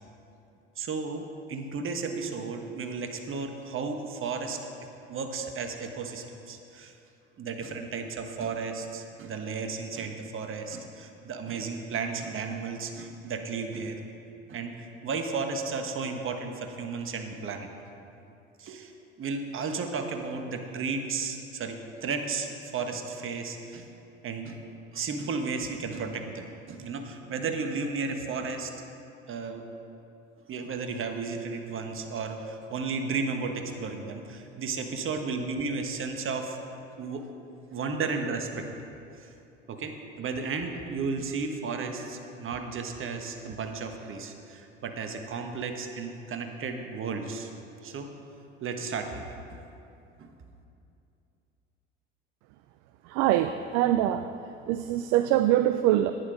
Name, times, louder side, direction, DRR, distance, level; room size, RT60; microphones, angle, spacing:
voice 1, 0.8-4.6 5.1-6.9 7.4-14.0 14.5-17.7 18.6-18.9 19.2-23.9 24.2-24.6 24.9-28.7 29.3-29.7 30.5-36.6 37.0-37.3 37.7-38.7 39.2-39.3 39.7-47.5 47.8-48.1 48.6-49.6 50.2-50.3, right 4 dB, 45° right, 5 dB, 1.4 m, -34 dB
voice 2, 53.1-54.2 54.7-56.1, right 13 dB, 65° right, 11 dB, 0.5 m, -23 dB
11.0 x 9.8 x 5.2 m, 2.7 s
hypercardioid pair, 65°, 30 cm